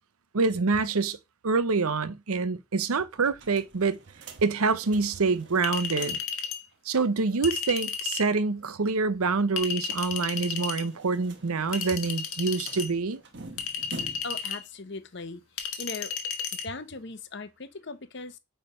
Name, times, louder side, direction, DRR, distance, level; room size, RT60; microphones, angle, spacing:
voice 1, 0.3-1.2 1.4-4.0 4.4-6.2 6.8-13.2, right 4 dB, 85° right, 0.7 m, -26 dB
sound 1, 3.1-6.4 6.7-6.8 7.0-7.1 9.9-14.5, right 2 dB, 55° right, 1.2 m, -47 dB
Chink clink, 5.6-6.6 7.4-8.3 9.6-10.8 11.7-12.9 13.6-14.6 15.6-16.6, left 6 dB, 75° left, 1.3 m, -33 dB
voice 2, 14.2-15.4 15.8-16.1 16.6-18.4, left 3 dB, 50° left, 0.8 m, -38 dB
8.8 x 3.4 x 5.4 m
head